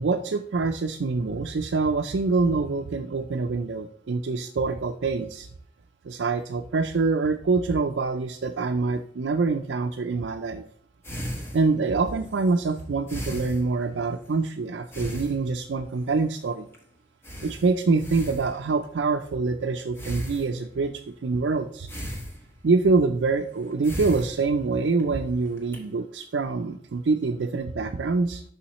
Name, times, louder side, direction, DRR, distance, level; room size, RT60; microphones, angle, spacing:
voice 1, 0.0-5.5 6.0-10.6 11.5-16.7 17.4-21.9 22.6-28.4, right 4 dB, 85° right, 4 dB, 0.5 m, -25 dB
sound 1, 11.0-14.4 14.9-15.9 16.3-16.5 16.7-16.8 17.2-18.9 20.0-20.9 21.9-22.9 23.5-25.0 25.5-25.8, equal, 15° left, 1.3 m, -37 dB
7.0 x 5.6 x 3.0 m, 0.64 s
head